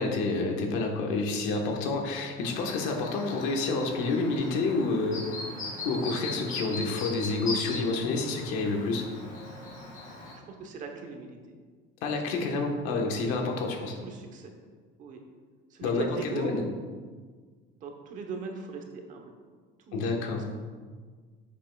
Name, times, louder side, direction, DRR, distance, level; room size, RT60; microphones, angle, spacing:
voice 1, 0.0-5.2 5.8-9.0 12.0-13.9 15.8-16.6 19.9-20.4, left 3 dB, 90° left, 2 dB, 1.3 m, -29 dB
Chirp tweet, 2.4-10.4, left 2 dB, 40° left, 2.1 m, -39 dB
voice 2, 10.3-11.6 12.3-12.4 14.0-14.5 15.0-15.2 15.7-16.5 17.8-19.3 19.8-20.5, right 5 dB, 40° right, 3 dB, 1.0 m, -40 dB
9.7 x 7.3 x 2.3 m, 1.5 s
cardioid pair, 170°, 21 cm